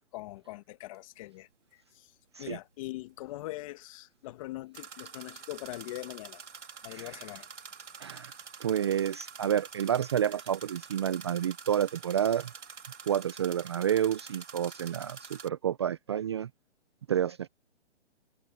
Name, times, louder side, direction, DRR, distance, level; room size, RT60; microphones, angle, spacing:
voice 1, 0.1-6.4 6.8-7.5, left 18 dB, 30° left, 1.6 m, -42 dB
sound 1, 0.9-1.0 4.7-15.5, right 6 dB, 85° right, 3.5 m, -47 dB
voice 2, 8.0-8.3 8.6-12.5 13.1-16.5 17.1-17.5, right 9 dB, 25° right, 0.5 m, -29 dB
hypercardioid pair, 155°, 35 cm